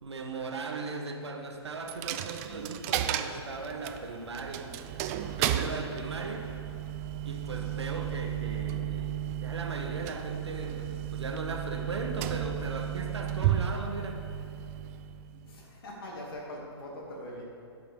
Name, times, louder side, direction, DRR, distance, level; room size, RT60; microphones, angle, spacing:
voice 1, 0.0-4.7 5.2-6.5 7.2-14.2, right 3 dB, 75° right, 3 dB, 1.3 m, -38 dB
Coin (dropping), 1.9-15.6, right 11 dB, 35° right, 0.5 m, -34 dB
voice 2, 15.4-17.4, left 1 dB, 55° left, -2 dB, 2.6 m, -42 dB
12.5 x 5.7 x 5.4 m, 2.6 s
figure-of-eight pair, 120°, 14 cm